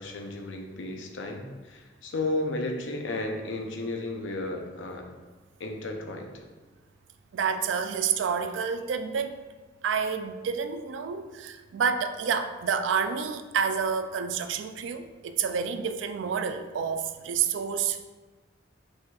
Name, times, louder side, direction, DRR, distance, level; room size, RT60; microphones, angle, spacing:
voice 1, 0.0-5.1 5.6-6.4, left 2 dB, 80° left, 3 dB, 0.6 m, -33 dB
voice 2, 7.3-9.3 9.8-18.1, right 6 dB, 75° right, 9 dB, 0.3 m, -29 dB
4.9 x 4.1 x 2.4 m, 1.3 s
head